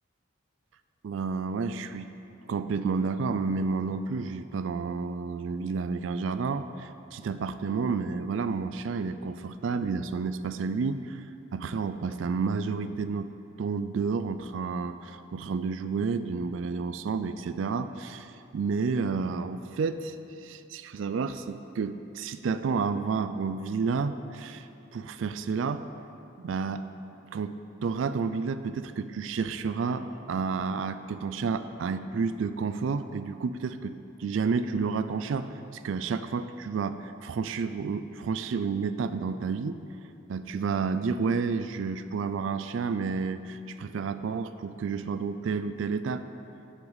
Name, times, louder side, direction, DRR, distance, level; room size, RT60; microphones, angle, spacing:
voice 1, 1.0-2.1 2.5-11.3 11.5-13.3 13.6-20.2 20.4-25.8 26.4-26.8 27.3-39.8 40.3-46.2, right 5 dB, 70° right, 11 dB, 0.3 m, -30 dB
16.0 x 5.8 x 4.0 m, 2.7 s
head